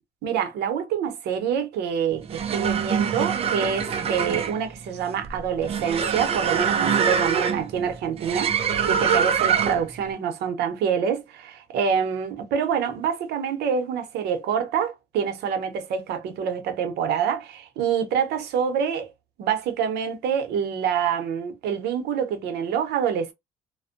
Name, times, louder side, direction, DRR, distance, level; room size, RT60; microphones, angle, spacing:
voice 1, 0.2-8.5 8.9-19.1 19.4-23.3, right 7 dB, 75° right, 0.7 m, -26 dB
sound 1, 2.2-10.0, right 7 dB, 35° right, 0.4 m, -24 dB
2.5 x 2.1 x 2.5 m
cardioid pair, 110°, 17 cm